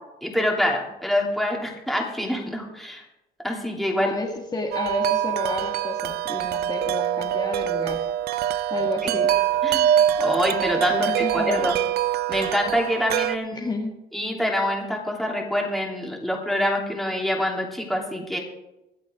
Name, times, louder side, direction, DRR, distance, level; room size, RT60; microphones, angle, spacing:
voice 1, 0.2-3.0 3.4-4.1 9.0-9.1 9.6-11.8 12.3-13.7 14.1-18.4, left 1 dB, ahead, -1 dB, 3.2 m, -26 dB
voice 2, 4.0-8.0 8.7-9.3 10.9-11.7 13.5-13.9, left 3 dB, 25° left, -1 dB, 1.8 m, -30 dB
Wind chime, 4.7-13.4, right 11 dB, 70° right, 0.5 m, -24 dB
24.0 x 8.1 x 3.6 m, 0.94 s
cardioid pair, 110°, 17 cm